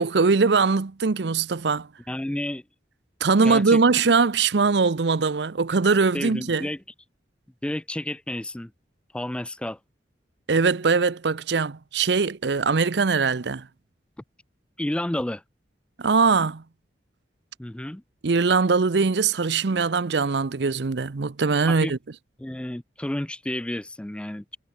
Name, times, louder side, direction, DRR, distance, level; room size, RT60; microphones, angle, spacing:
voice 1, 0.0-1.9 3.2-6.7 10.5-13.7 16.0-16.6 18.2-22.0, right 4 dB, 70° right, 0.7 m, -21 dB
voice 2, 2.1-2.6 3.4-3.8 6.1-6.8 7.6-8.7 9.1-9.8 14.8-15.4 17.6-18.0 21.7-22.0 22.4-24.6, left 1 dB, 5° left, 0.3 m, -31 dB
head